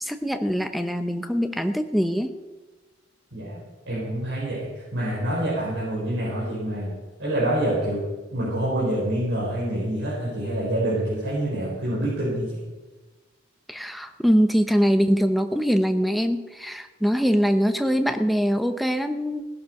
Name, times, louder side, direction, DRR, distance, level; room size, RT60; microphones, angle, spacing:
voice 1, 0.0-2.4 13.7-19.4, equal, ahead, 7 dB, 0.7 m, -23 dB
voice 2, 3.3-6.9 7.2-8.0 8.3-12.6, right 1 dB, 70° right, -8 dB, 5.0 m, -26 dB
17.5 x 11.0 x 4.9 m, 1.3 s
head